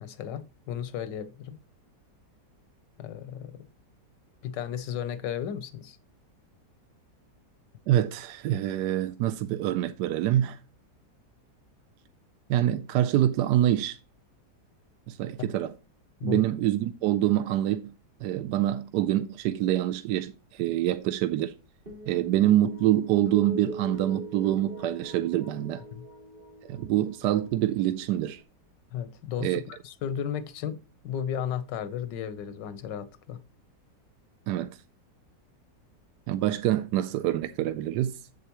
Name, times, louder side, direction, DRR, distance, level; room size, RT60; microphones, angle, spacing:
voice 1, 0.0-1.6 3.0-3.7 4.4-6.0 16.2-16.5 25.9-26.1 28.9-33.4, left 9 dB, 85° left, 1.5 m, -34 dB
voice 2, 7.9-10.6 12.5-14.0 15.1-15.7 16.2-17.9 18.2-21.5 22.1-25.8 26.6-28.4 29.4-29.6 34.5-34.8 36.3-38.2, right 13 dB, 75° right, 1.2 m, -26 dB
sound 1, 21.9-28.4, right 1 dB, 30° right, 4.4 m, -42 dB
8.1 x 7.7 x 2.9 m
omnidirectional pair, 1.9 m